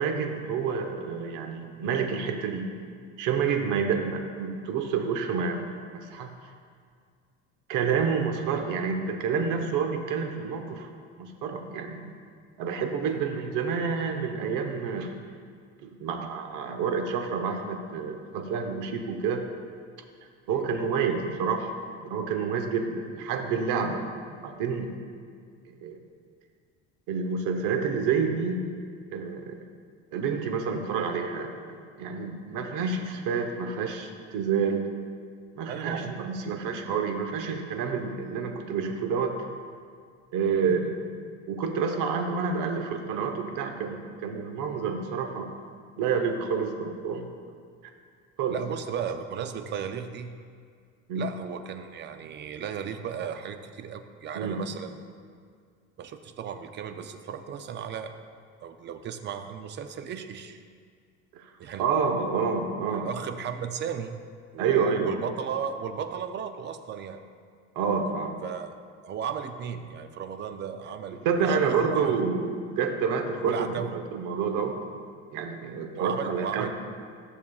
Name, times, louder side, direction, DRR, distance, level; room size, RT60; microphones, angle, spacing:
voice 1, 0.0-2.7 3.2-6.3 7.7-10.9 11.2-12.1 12.6-15.1 15.8-19.4 20.5-21.7 22.0-24.1 24.4-24.9 25.7-26.0 27.1-28.6 29.1-29.6 30.1-34.9 35.5-39.4 40.3-41.0 41.5-45.5 46.0-47.3 48.4-48.6 51.1-51.3 54.3-54.6 61.3-61.5 61.8-63.1 64.6-65.1 67.7-68.4 71.1-74.8 75.3-76.7, right 5 dB, 65° right, 5 dB, 1.0 m, -28 dB
voice 2, 35.7-36.2 36.6-36.7 40.5-40.6 48.5-50.3 51.2-54.9 56.0-58.1 58.6-60.6 61.6-61.8 62.9-64.2 64.5-67.2 68.4-68.7 69.0-72.2 73.4-73.9 75.9-76.7, right 7 dB, 35° right, 8 dB, 0.4 m, -35 dB
13.0 x 7.0 x 2.3 m, 2.1 s
cardioid pair, 135°, 34 cm